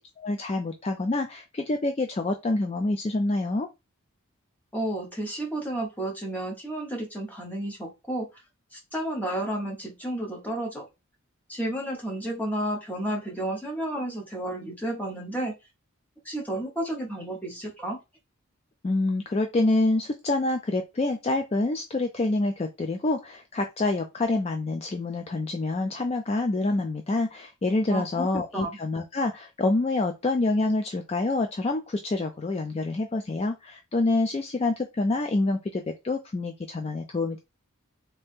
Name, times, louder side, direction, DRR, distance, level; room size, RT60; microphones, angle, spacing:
voice 1, 0.2-3.7 18.8-37.4, left 2 dB, 30° left, 5 dB, 0.3 m, -27 dB
voice 2, 4.7-8.4 8.7-10.9 11.5-15.5 16.2-18.0 27.9-28.3 28.5-28.8, right 1 dB, 10° left, 0 dB, 1.0 m, -31 dB
3.3 x 2.7 x 3.5 m, 0.24 s
head